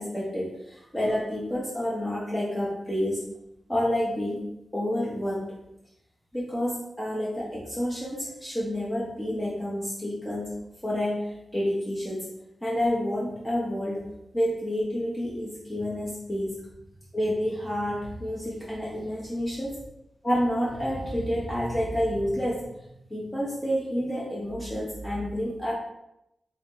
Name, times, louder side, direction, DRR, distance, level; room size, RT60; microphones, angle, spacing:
voice 1, 0.0-3.2 3.7-4.4 4.7-5.5 6.3-10.5 10.8-12.3 12.6-14.0 14.3-16.6 17.1-19.7 20.2-22.7 23.1-25.7, equal, 15° left, -6 dB, 0.8 m, -29 dB
3.6 x 3.0 x 3.7 m, 0.84 s
wide cardioid pair, 175°, 0 cm